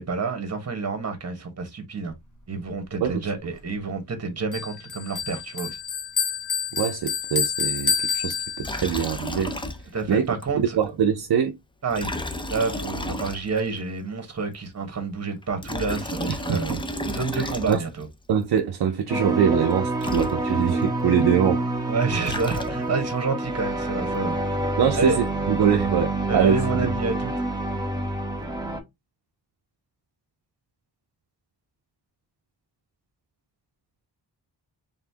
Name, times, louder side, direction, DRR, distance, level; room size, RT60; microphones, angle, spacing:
voice 1, 0.0-2.1 2.5-5.8 9.9-10.8 11.8-12.1 12.5-16.8 17.0-18.1 21.9-24.4 25.0-25.2 26.3-27.3, right 4 dB, 35° right, 1.3 m, -28 dB
voice 2, 3.0-3.3 6.7-9.5 10.1-11.6 16.3-16.6 17.4-17.8 18.3-21.6 24.8-26.9, right 8 dB, 60° right, 0.6 m, -24 dB
Bell, 4.5-9.0, left 6 dB, 45° left, 1.4 m, -28 dB
Liquid, 8.6-10.1 10.4-10.5 11.9-13.8 15.4-18.1 19.7-19.8 20.0-20.8 22.0-23.1, left 1 dB, 10° left, 0.4 m, -32 dB
sound 1, 19.1-28.8, right 2 dB, 10° right, 1.0 m, -27 dB
4.2 x 3.6 x 2.8 m
wide cardioid pair, 155°, 43 cm